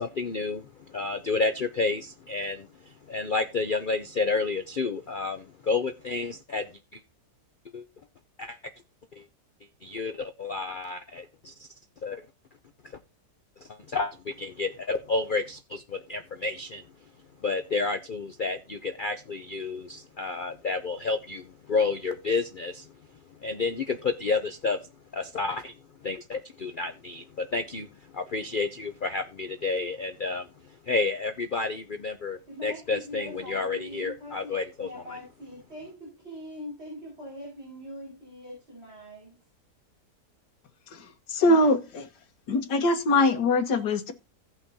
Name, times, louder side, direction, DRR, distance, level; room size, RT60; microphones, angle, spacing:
voice 1, 0.0-2.7 3.1-7.0 7.7-7.8 8.4-8.6 9.2-9.3 9.8-11.7 12.0-12.2 12.8-13.0 13.6-16.8 17.4-22.9 23.4-24.8 25.1-25.7 26.0-27.9 28.1-30.5 30.8-35.2, left 4 dB, 70° left, 0.4 m, -30 dB
voice 2, 32.5-34.5 34.8-39.3, left 1 dB, 40° right, 5.4 m, -42 dB
voice 3, 41.3-42.1 42.5-44.1, left 2 dB, 90° left, 1.8 m, -22 dB
17.0 x 5.8 x 2.7 m
omnidirectional pair, 1.7 m